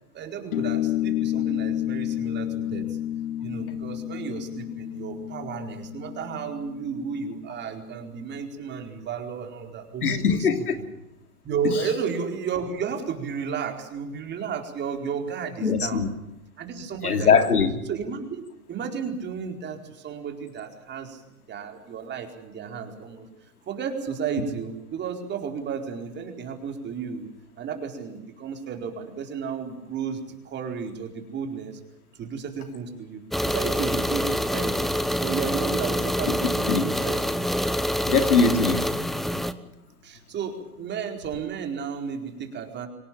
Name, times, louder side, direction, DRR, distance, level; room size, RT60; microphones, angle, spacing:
voice 1, 0.1-2.8 3.4-10.5 10.8-10.9 11.4-16.0 16.6-17.4 17.9-21.2 21.5-23.3 23.7-27.3 27.6-31.8 32.2-34.8 35.2-37.2 40.0-42.9, right 6 dB, 25° right, 4 dB, 4.5 m, -33 dB
sound 1, 0.5-7.5, left 12 dB, 60° left, 1.6 m, -30 dB
voice 2, 10.0-10.7 15.6-16.1 17.0-17.7 36.7-36.8 38.0-38.9, left 5 dB, 90° left, 7 dB, 3.2 m, -21 dB
sound 2, 33.3-39.5, equal, ahead, 0.8 m, -26 dB
25.0 x 18.5 x 8.8 m, 0.87 s
hypercardioid pair, 125°, 44 cm